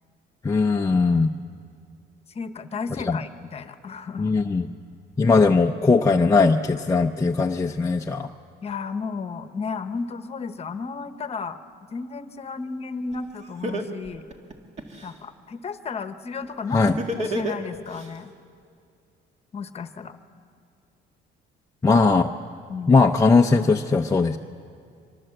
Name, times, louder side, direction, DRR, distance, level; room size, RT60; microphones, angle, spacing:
voice 1, 0.4-1.3 3.1-3.2 4.2-4.7 5.2-8.3 16.7-16.9 21.8-22.3 22.9-24.4, left 4 dB, 15° left, 2 dB, 0.6 m, -19 dB
voice 2, 2.3-4.4 8.6-11.6 11.9-14.3 15.0-16.8 17.2-18.3 19.5-20.2 22.7-23.0, left 5 dB, 30° left, 10 dB, 1.1 m, -33 dB
Laughter, 13.1-13.2 13.6-15.1 16.9-18.1, right 1 dB, 35° right, 2.0 m, -28 dB
25.0 x 23.0 x 7.8 m, 2.4 s
cardioid pair, 145°, 20 cm